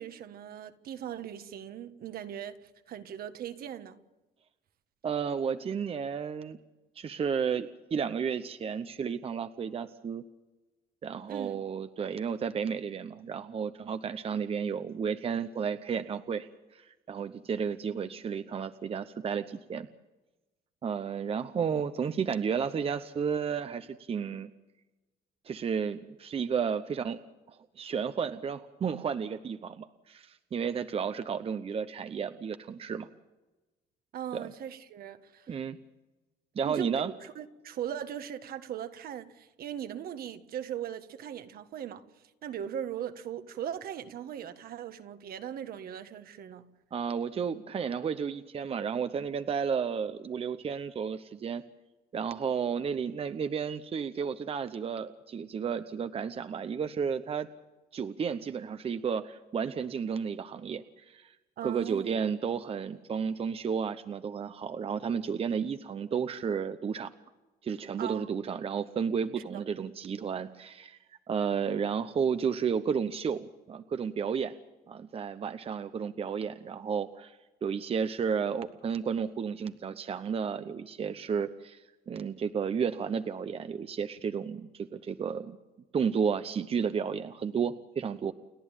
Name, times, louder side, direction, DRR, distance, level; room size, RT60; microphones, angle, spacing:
voice 1, 0.0-2.6 2.9-4.0 11.3-11.6 34.1-35.5 36.6-42.0 42.4-46.7 61.6-62.2 68.0-68.3 69.4-69.6, right 9 dB, 60° right, 1.6 m, -39 dB
voice 2, 5.0-6.6 7.0-10.2 11.0-19.9 20.8-24.5 25.4-27.2 27.5-33.1 34.3-34.5 35.5-35.8 36.6-37.1 46.9-51.6 52.1-57.5 57.9-61.3 61.6-67.1 67.6-71.0 71.3-74.5 74.9-85.6 85.9-88.3, right 6 dB, 35° right, 0.9 m, -32 dB
29.5 x 11.0 x 9.0 m
cardioid pair, 110°, 17 cm